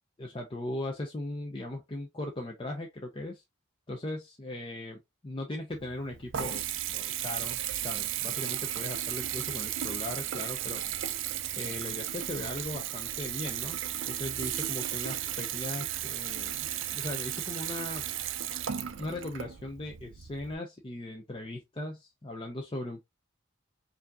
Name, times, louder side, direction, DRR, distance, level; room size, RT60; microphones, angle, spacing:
voice 1, 0.2-3.4 3.9-6.6 6.9-10.8 11.6-13.8 14.1-18.0 19.0-23.0, left 1 dB, 25° left, 0.5 m, -38 dB
Water tap faucet / Bathtub (filling or washing) / Trickle dribble, 5.7-20.6, right 11 dB, 60° right, 0.4 m, -35 dB
4.8 x 2.7 x 2.3 m
head